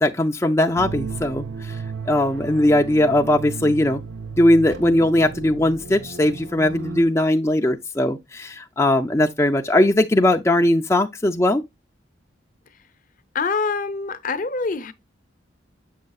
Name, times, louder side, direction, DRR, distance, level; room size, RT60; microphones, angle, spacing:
voice 1, 0.0-1.8 2.1-4.0 4.4-11.6, left 1 dB, 15° left, 0.5 m, -19 dB
sound 1, 0.8-7.0, right 4 dB, 70° right, 0.7 m, -34 dB
voice 2, 13.3-14.9, left 4 dB, 45° left, 0.7 m, -25 dB
7.6 x 6.4 x 2.3 m
head